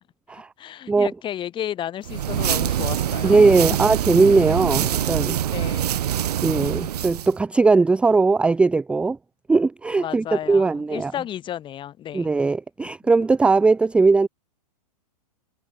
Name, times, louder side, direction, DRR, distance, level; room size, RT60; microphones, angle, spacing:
voice 1, 0.6-3.4 3.9-4.2 5.5-6.0 10.0-12.4, left 11 dB, 25° left, 4.6 m, -33 dB
sound 1, 2.0-7.3, right 11 dB, 70° right, 1.7 m, -24 dB
voice 2, 3.2-5.4 6.4-9.2 9.5-11.1 12.1-14.3, right 3 dB, 5° right, 0.6 m, -19 dB
hypercardioid pair, 135°, 20 cm